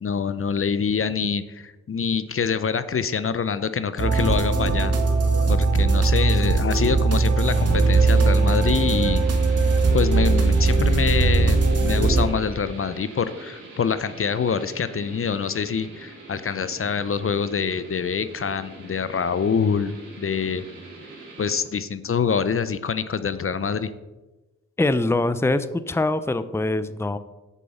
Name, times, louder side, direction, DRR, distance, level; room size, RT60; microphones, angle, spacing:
voice 1, 0.0-4.9 5.5-9.2 9.9-20.6 21.4-23.9, left 6 dB, 50° left, 13 dB, 0.7 m, -25 dB
sound 1, 4.0-12.2, right 3 dB, 55° right, 1.7 m, -19 dB
sound 2, 7.4-21.6, right 3 dB, 90° right, 2.9 m, -42 dB
voice 2, 24.8-27.2, left 2 dB, 10° left, 13 dB, 0.6 m, -23 dB
8.4 x 5.4 x 7.0 m, 1.1 s
supercardioid pair, 45°, 29 cm